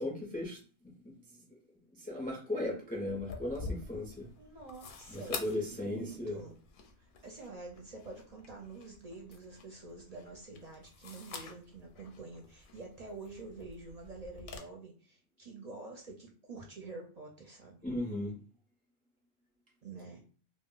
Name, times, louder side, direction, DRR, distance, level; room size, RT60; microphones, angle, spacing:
voice 1, 0.0-1.4 2.0-4.3 5.1-6.4 17.8-18.4, left 1 dB, 15° left, 0 dB, 0.3 m, -37 dB
sound 1, 3.1-14.6, left 4 dB, 60° left, 0.6 m, -48 dB
voice 2, 4.4-5.3 5.8-6.6 7.0-17.8 19.8-20.2, right 3 dB, 50° right, 0 dB, 0.5 m, -47 dB
2.1 x 2.1 x 3.7 m, 0.39 s
omnidirectional pair, 1.1 m